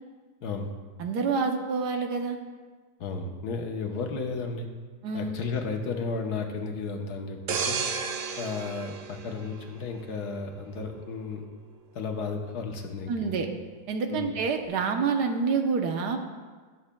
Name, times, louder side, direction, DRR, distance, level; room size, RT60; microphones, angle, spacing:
voice 1, 1.0-2.4 5.0-5.3 13.1-13.5 13.9-16.2, right 5 dB, 80° right, 4 dB, 1.4 m, -27 dB
voice 2, 3.0-4.7 5.1-7.8 8.4-11.4 11.9-13.5 14.1-14.3, left 4 dB, 75° left, 3 dB, 1.4 m, -33 dB
sound 1, 7.5-10.2 10.6-10.8, right 6 dB, 60° right, 1.0 m, -33 dB
18.0 x 7.2 x 2.2 m, 1.5 s
omnidirectional pair, 1.8 m